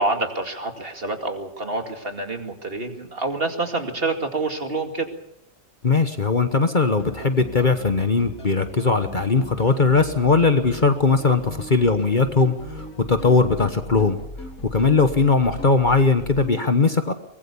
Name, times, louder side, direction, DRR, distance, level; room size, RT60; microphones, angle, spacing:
voice 1, 0.0-5.1, right 2 dB, 40° right, 5 dB, 2.5 m, -27 dB
voice 2, 5.8-14.2 14.7-17.1, left 4 dB, 35° left, 8 dB, 1.3 m, -19 dB
sound 1, 7.0-16.6, left 1 dB, 80° left, 4.8 m, -38 dB
23.5 x 20.5 x 7.1 m, 0.76 s
omnidirectional pair, 1.5 m